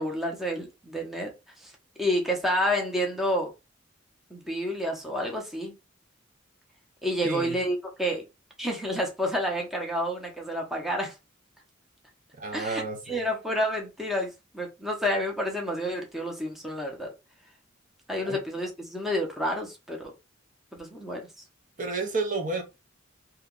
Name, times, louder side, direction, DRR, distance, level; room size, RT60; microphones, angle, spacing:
voice 1, 0.0-1.3 1.6-1.7 2.0-3.5 4.3-5.7 7.0-8.2 8.6-11.1 12.5-17.1 18.1-20.1 20.7-21.2, equal, ahead, 0.7 m, -29 dB
voice 2, 7.2-7.6 12.4-13.2 18.3-18.4 21.8-22.6, right 3 dB, 40° right, 0.7 m, -31 dB
2.9 x 2.2 x 3.7 m
head